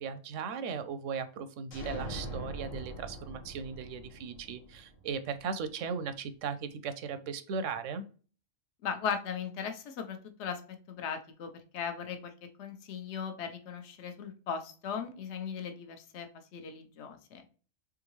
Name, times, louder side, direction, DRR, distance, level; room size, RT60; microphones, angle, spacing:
voice 1, 0.0-8.0, right 6 dB, 85° right, 12 dB, 1.0 m, -37 dB
sound 1, 1.7-5.4, right 1 dB, 90° left, 1.6 m, -42 dB
voice 2, 8.8-17.4, left 7 dB, 65° left, 7 dB, 1.0 m, -38 dB
3.7 x 3.5 x 3.0 m, 0.38 s
omnidirectional pair, 1.3 m